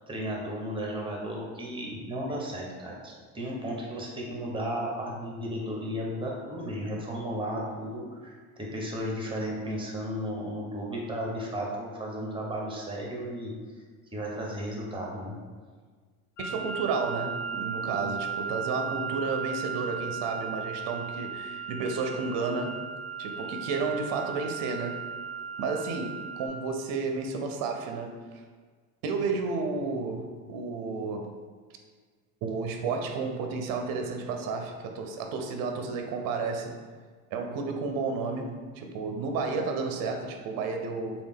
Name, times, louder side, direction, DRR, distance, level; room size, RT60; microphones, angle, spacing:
voice 1, 0.1-13.5 14.1-15.3, equal, 10° right, -2 dB, 0.8 m, -34 dB
sound 1, 16.4-26.5, right 6 dB, 65° left, 1.1 m, -36 dB
voice 2, 16.4-22.7 23.2-25.0 25.6-28.1 29.0-31.3 32.4-36.7 37.3-41.2, right 4 dB, 50° right, 4 dB, 0.6 m, -32 dB
3.2 x 2.4 x 3.4 m, 1.5 s
supercardioid pair, 95°, 45 cm